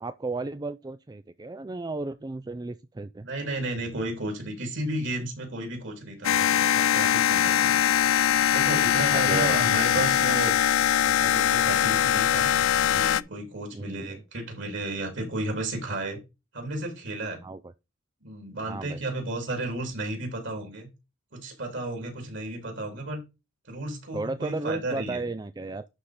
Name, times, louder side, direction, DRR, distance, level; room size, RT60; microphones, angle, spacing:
voice 1, 0.0-3.3 9.1-9.8 13.7-14.2 17.4-17.6 18.7-19.0 24.1-25.9, right 3 dB, 20° right, 0.4 m, -34 dB
voice 2, 3.2-7.9 8.5-10.5 11.0-12.5 12.8-16.2 16.5-17.4 18.2-20.9 21.3-23.2 23.7-25.2, right 2 dB, 60° right, 3.4 m, -33 dB
sound 1, 6.2-13.2, left 10 dB, 70° left, 0.4 m, -22 dB
11.5 x 4.1 x 4.9 m
head